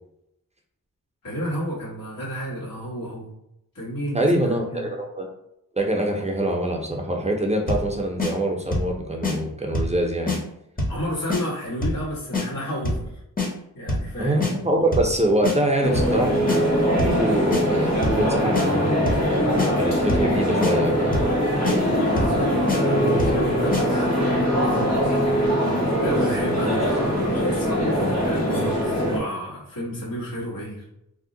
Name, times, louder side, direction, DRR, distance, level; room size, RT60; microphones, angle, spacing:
voice 1, 1.2-3.3 3.7-4.9 10.9-13.1 13.7-14.5 22.1-25.3 26.0-30.8, equal, 90° left, -6 dB, 1.4 m, -31 dB
voice 2, 4.1-5.3 5.8-10.4 14.2-16.4 17.0-19.0 19.8-21.1, right 1 dB, 20° right, 1 dB, 0.5 m, -24 dB
sound 1, 7.7-7.9 8.2-8.3 8.7-8.9 9.2-9.4 9.7-10.0 10.3-10.4 10.8-11.0 11.3-11.4 11.8-12.0 12.3-12.5 12.9-13.1 13.4-13.5 13.9-14.1 14.4-14.5 14.9-15.1 15.4-15.6 16.0-16.2 16.5-16.6 17.0-17.2 17.5-17.6 18.0-18.2 18.5-18.7 19.1-19.3 19.6-19.7 20.1-20.3 20.6-20.7 21.1-21.4 21.6-21.8 22.2-22.4 22.7-22.8 23.2-23.4 23.7-23.8, left 2 dB, 25° left, 0.7 m, -24 dB
sound 2, 15.8-29.2, equal, 50° left, 1.2 m, -22 dB
2.7 x 2.1 x 3.7 m, 0.81 s
wide cardioid pair, 100°, 34 cm